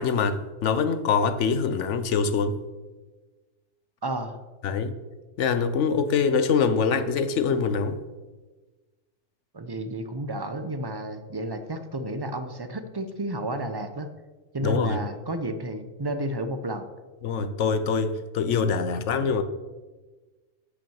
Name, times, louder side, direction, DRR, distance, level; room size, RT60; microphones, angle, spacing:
voice 1, 0.0-2.6 4.6-4.9 5.4-8.0 14.6-15.0 17.2-19.4, left 5 dB, 75° left, 11 dB, 1.1 m, -24 dB
voice 2, 4.0-4.4 9.5-14.1 14.5-16.9, right 1 dB, 25° right, 8 dB, 0.6 m, -31 dB
8.5 x 6.1 x 7.1 m, 1.3 s
omnidirectional pair, 1.3 m